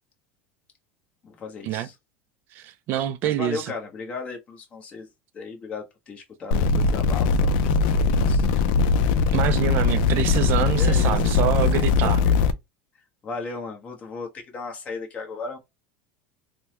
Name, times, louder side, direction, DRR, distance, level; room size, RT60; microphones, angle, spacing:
voice 1, 1.2-2.0 3.0-5.1 5.3-8.7 9.7-9.9 10.7-12.4 13.2-15.6, left 4 dB, 25° left, 0.9 m, -36 dB
voice 2, 2.5-3.7 9.3-12.2, right 12 dB, 40° right, 0.3 m, -26 dB
sound 1, 6.5-12.5, left 4 dB, 60° left, 0.4 m, -20 dB
3.4 x 2.1 x 2.8 m
supercardioid pair, 155°, 5 cm